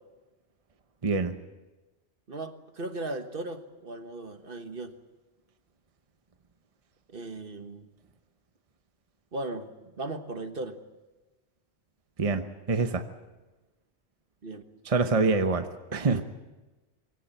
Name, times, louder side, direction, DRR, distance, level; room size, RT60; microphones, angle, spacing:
voice 1, 1.0-1.4 12.2-13.0 14.8-16.2, right 4 dB, 35° right, 7 dB, 1.0 m, -26 dB
voice 2, 2.3-4.9 7.1-7.9 9.3-9.7 10.0-10.8 14.4-14.6 16.1-16.2, right 2 dB, 55° right, 7 dB, 1.6 m, -37 dB
23.0 x 17.0 x 9.1 m, 1.1 s
omnidirectional pair, 1.1 m